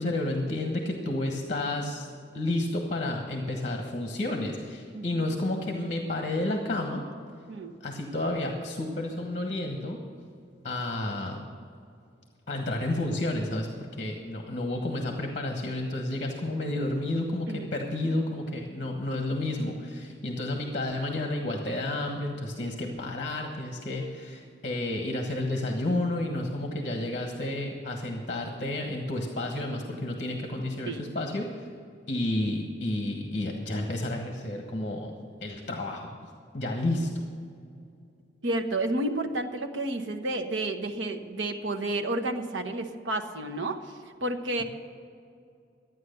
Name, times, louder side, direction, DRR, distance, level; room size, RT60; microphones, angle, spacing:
voice 1, 0.0-2.1 2.3-7.0 7.8-10.0 10.6-11.4 12.5-31.7 32.1-36.1 36.5-37.3, left 1 dB, 40° left, 3 dB, 1.3 m, -31 dB
voice 2, 38.4-43.8 44.2-44.6, right 2 dB, 80° right, 4 dB, 1.1 m, -31 dB
12.5 x 9.3 x 6.7 m, 2.4 s
head